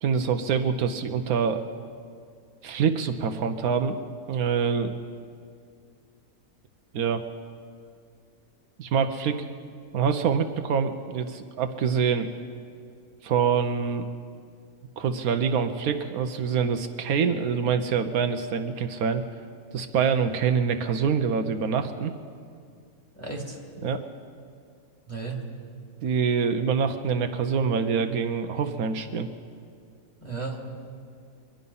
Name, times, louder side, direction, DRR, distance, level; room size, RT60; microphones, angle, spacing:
voice 1, 0.0-1.6 2.6-4.0 4.3-4.9 6.9-7.2 8.8-9.4 9.9-12.3 13.2-14.0 15.0-19.2 19.7-22.1 23.8-24.0 26.0-29.3, right 6 dB, 75° right, 7 dB, 1.2 m, -25 dB
voice 2, 23.2-23.6 25.1-25.4 30.2-30.6, right 4 dB, 10° left, -2 dB, 2.2 m, -34 dB
24.0 x 10.5 x 5.5 m, 2.3 s
omnidirectional pair, 1.6 m